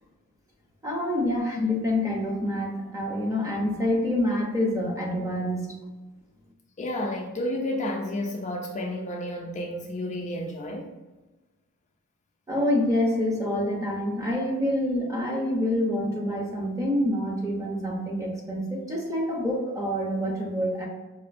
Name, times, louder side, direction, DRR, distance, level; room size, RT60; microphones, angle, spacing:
voice 1, 0.8-5.7 12.5-20.9, left 1 dB, 15° right, -1 dB, 0.7 m, -27 dB
voice 2, 6.8-10.9, left 1 dB, 30° left, 1 dB, 0.4 m, -31 dB
4.9 x 2.6 x 2.5 m, 1.2 s
head